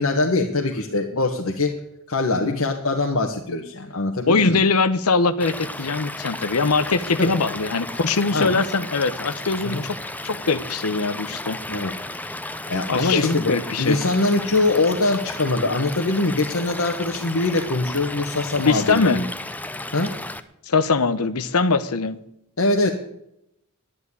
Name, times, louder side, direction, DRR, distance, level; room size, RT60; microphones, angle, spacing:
voice 1, 0.0-1.8 2.1-4.6 7.2-7.3 8.3-8.6 9.6-9.8 11.7-11.9 12.7-13.5 13.8-19.2 19.9-20.2 22.6-22.9, left 2 dB, 65° left, 2 dB, 1.4 m, -22 dB
voice 2, 4.3-10.0 10.2-11.6 12.9-14.0 18.6-19.2 20.7-22.2, left 4 dB, 90° left, 12 dB, 0.9 m, -22 dB
Stream / Liquid, 5.4-20.4, left 2 dB, 5° left, 0.7 m, -34 dB
11.0 x 10.5 x 9.6 m, 0.80 s
head